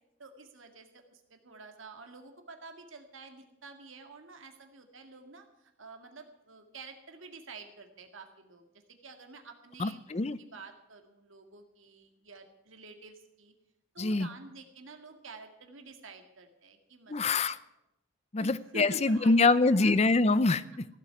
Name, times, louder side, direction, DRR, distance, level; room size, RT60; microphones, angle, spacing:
voice 1, 0.2-10.0 10.4-13.5 13.9-17.4 18.4-19.9 20.3-20.4, right 3 dB, 75° right, 5 dB, 2.0 m, -49 dB
voice 2, 9.8-10.4 14.0-14.3 17.1-17.6 18.3-20.9, left 3 dB, 30° left, 15 dB, 0.5 m, -25 dB
15.5 x 8.1 x 9.6 m, 0.89 s
head